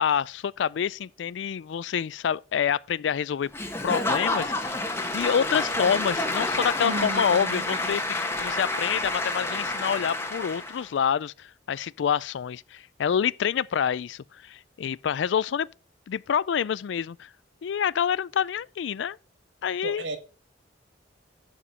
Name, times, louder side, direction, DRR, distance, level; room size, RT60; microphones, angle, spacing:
voice 1, 0.0-3.5 3.8-4.9 5.1-8.0 8.4-15.7 16.1-17.3 17.6-19.2 19.6-20.0, left 8 dB, 70° left, 0.3 m, -27 dB
Applause / Crowd, 3.5-10.9, left 2 dB, 15° left, 1.3 m, -29 dB
voice 2, 6.8-7.9 19.8-20.2, right 2 dB, 75° right, 1.5 m, -34 dB
11.0 x 5.0 x 5.5 m
head